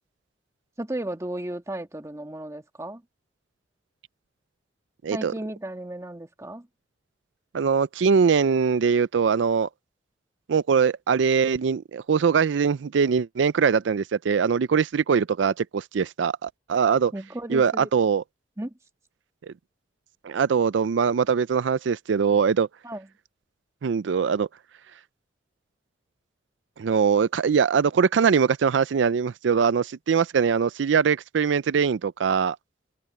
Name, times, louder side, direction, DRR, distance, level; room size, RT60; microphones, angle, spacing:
voice 1, 0.8-3.0 5.1-6.7 17.1-17.9 18.6-18.7 22.8-23.1, right 1 dB, 15° right, 1.5 m, -34 dB
voice 2, 5.0-5.3 7.5-9.7 10.5-17.1 17.5-18.2 19.5-19.6 20.2-22.7 23.8-24.5 26.8-32.6, right 6 dB, 90° right, 0.4 m, -22 dB
head